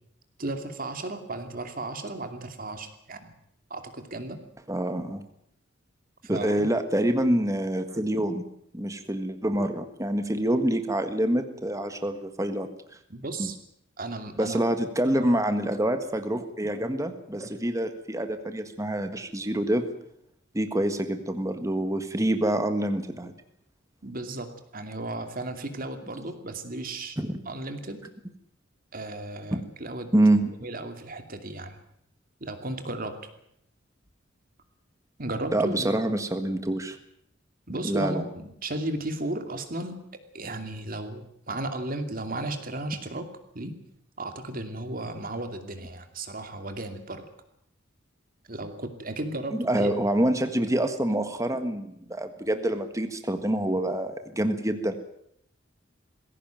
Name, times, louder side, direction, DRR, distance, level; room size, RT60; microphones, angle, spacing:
voice 1, 0.4-3.3 3.7-4.4 6.2-6.6 13.1-13.6 14.0-14.6 15.1-15.4 24.0-27.2 27.5-28.0 28.9-30.1 30.6-31.8 32.4-33.3 35.2-36.0 37.7-40.0 40.3-43.3 43.5-43.7 44.2-47.2 48.5-49.9, right 2 dB, 45° right, 7 dB, 2.6 m, -35 dB
voice 2, 4.7-5.2 6.3-8.4 8.7-12.7 13.4-13.5 14.4-19.9 20.5-23.3 27.2-27.4 29.5-29.6 30.1-30.4 35.5-37.0 37.8-38.2 49.5-54.9, right 1 dB, 15° right, 8 dB, 1.6 m, -26 dB
20.5 x 16.5 x 9.1 m, 0.72 s
head